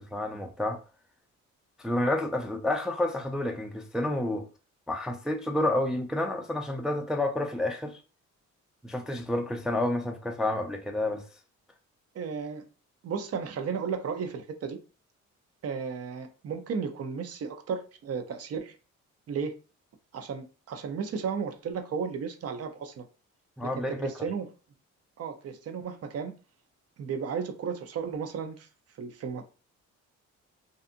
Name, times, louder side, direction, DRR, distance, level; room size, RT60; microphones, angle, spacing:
voice 1, 0.1-0.8 1.8-4.5 4.9-8.0 8.8-11.2 23.6-24.1, left 1 dB, ahead, 0.3 m, -29 dB
voice 2, 12.1-12.6 13.0-14.8 15.6-18.7 19.3-19.5 20.1-23.0 23.6-24.5 25.2-26.3 27.0-28.7 29.0-29.4, right 6 dB, 55° right, 0.6 m, -34 dB
2.7 x 2.4 x 2.5 m
cardioid pair, 90°, 30 cm